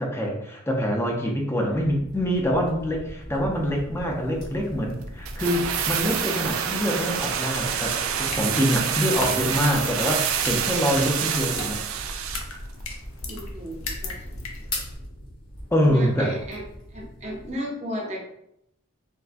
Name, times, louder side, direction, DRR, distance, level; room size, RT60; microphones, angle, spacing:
voice 1, 0.0-11.8 15.7-16.4, equal, 10° left, 0 dB, 0.4 m, -25 dB
sound 1, 1.7-17.6, left 1 dB, 45° left, 1.1 m, -41 dB
sound 2, 5.3-12.6 12.8-12.9, right 8 dB, 70° right, 0.3 m, -27 dB
sound 3, 7.5-15.0, left 3 dB, 75° left, 0.5 m, -38 dB
voice 2, 13.3-14.2 15.8-16.6 16.9-18.2, equal, 30° right, -2 dB, 0.7 m, -34 dB
3.5 x 2.1 x 2.4 m, 0.77 s
head